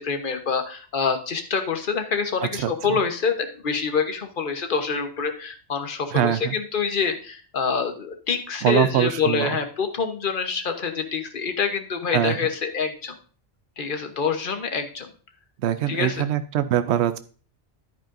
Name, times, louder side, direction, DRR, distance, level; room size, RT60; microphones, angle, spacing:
voice 1, 0.0-13.1 13.8-15.1 15.9-16.2, left 5 dB, 55° left, 6 dB, 1.2 m, -26 dB
voice 2, 2.4-3.0 6.1-6.5 8.6-9.6 12.1-12.4 15.6-17.2, right 10 dB, 90° right, 11 dB, 0.8 m, -23 dB
10.5 x 9.2 x 2.6 m, 0.39 s
omnidirectional pair, 1.1 m